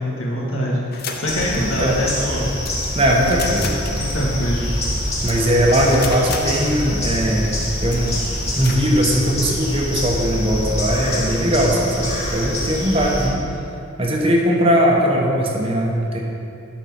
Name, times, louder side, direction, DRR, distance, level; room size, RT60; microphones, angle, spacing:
voice 1, 0.0-2.4 3.2-3.4 4.0-4.6, equal, 75° left, -3 dB, 1.7 m, -24 dB
sound 1, 0.9-8.8, left 5 dB, 50° left, 0.7 m, -36 dB
sound 2, 1.3-13.3, left 1 dB, 30° left, 1.9 m, -25 dB
voice 2, 1.5-2.0 2.9-3.7 5.2-7.5 7.8-8.2 8.6-13.5 14.0-16.2, equal, 25° right, -1 dB, 1.0 m, -19 dB
11.5 x 4.4 x 5.9 m, 2.7 s
head